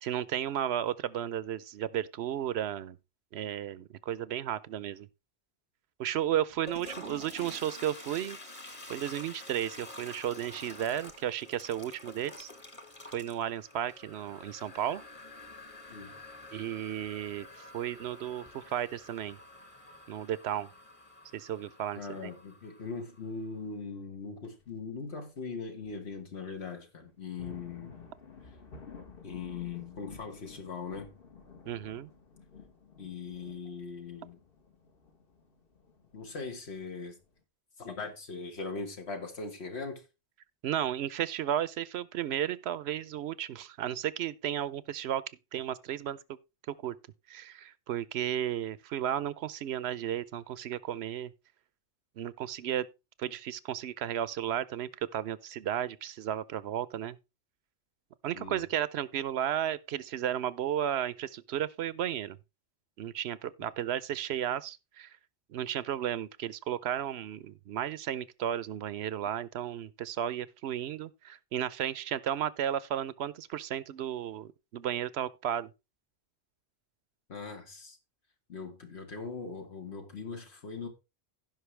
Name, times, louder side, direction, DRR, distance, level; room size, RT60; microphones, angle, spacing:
voice 1, 0.0-3.0 3.3-5.1 6.0-8.4 8.9-12.5 13.1-15.0 16.5-17.5 17.7-19.4 20.1-20.7 21.3-22.3 31.7-32.1 40.6-45.2 45.5-46.2 46.7-47.0 47.3-51.3 52.2-52.9 53.2-57.2 58.2-62.4 63.0-65.2 65.5-75.7, right 10 dB, 80° right, 0.9 m, -34 dB
Toilet flush, 6.5-23.2, left 1 dB, 30° left, 1.4 m, -49 dB
voice 2, 21.9-27.9 29.2-31.1 33.0-34.4 36.1-37.2 37.8-40.0 58.3-58.6 77.3-78.0 78.5-80.9, left 4 dB, 80° left, 1.8 m, -40 dB
sound 1, 24.4-24.7 25.4-25.5 25.8-25.9 27.1-37.4, left 5 dB, 60° left, 1.4 m, -52 dB
16.0 x 5.5 x 3.3 m
omnidirectional pair, 1.1 m